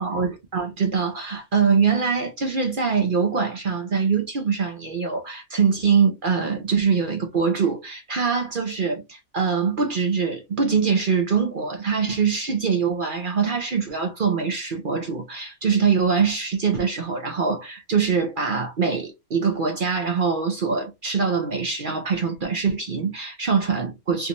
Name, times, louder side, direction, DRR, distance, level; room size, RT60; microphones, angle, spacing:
voice 1, 0.0-24.3, right 5 dB, 45° right, 0.7 m, -23 dB
3.7 x 2.7 x 2.8 m
omnidirectional pair, 1.5 m